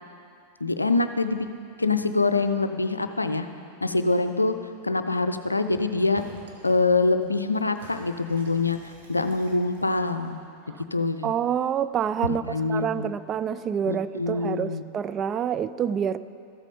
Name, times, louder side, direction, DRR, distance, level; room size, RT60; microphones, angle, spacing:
voice 1, 0.6-1.5 1.8-3.5 3.8-4.5 4.8-6.2 6.6-8.8 9.1-10.4 10.9-11.3 12.3-13.1 13.8-14.8, left 3 dB, 80° left, 9 dB, 0.5 m, -24 dB
sound 1, 5.7-5.9 6.1-6.8 7.1-10.5, right 2 dB, 60° right, 1.6 m, -49 dB
voice 2, 11.2-12.4 12.7-16.2, right 8 dB, 30° right, 13 dB, 0.3 m, -27 dB
13.5 x 8.2 x 5.3 m, 2.5 s
figure-of-eight pair, 90°, 0 cm